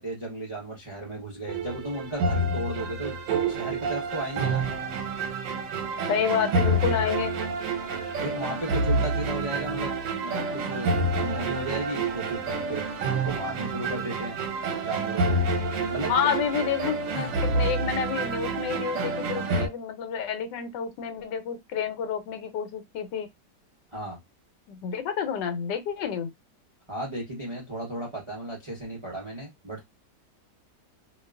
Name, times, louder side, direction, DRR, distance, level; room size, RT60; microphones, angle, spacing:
voice 1, 0.0-3.2 3.5-4.7 8.2-14.4 14.8-15.4 15.9-16.3 17.1-17.3 23.9-24.2 26.9-29.8, right 1 dB, 40° right, 0.4 m, -35 dB
sound 1, 1.5-19.7, right 2 dB, 85° right, 1.3 m, -28 dB
voice 2, 6.1-7.3 16.1-23.3 24.7-26.3, left 8 dB, 85° left, 1.3 m, -29 dB
2.8 x 2.2 x 2.3 m
omnidirectional pair, 1.9 m